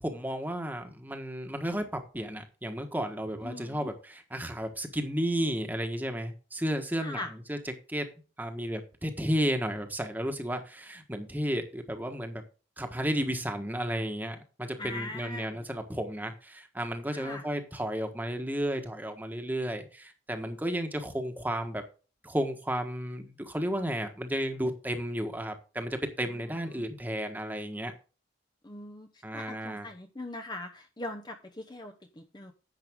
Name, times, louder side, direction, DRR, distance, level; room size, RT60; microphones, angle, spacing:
voice 1, 0.0-8.1 8.4-12.4 12.8-21.8 22.2-27.9 29.2-29.9, equal, 10° right, 6 dB, 1.4 m, -33 dB
voice 2, 3.4-3.9 7.0-7.3 14.8-15.6 17.1-17.4 26.7-26.8 28.6-29.1 29.3-32.5, left 2 dB, 20° left, 5 dB, 0.8 m, -41 dB
11.0 x 7.7 x 3.7 m, 0.35 s
head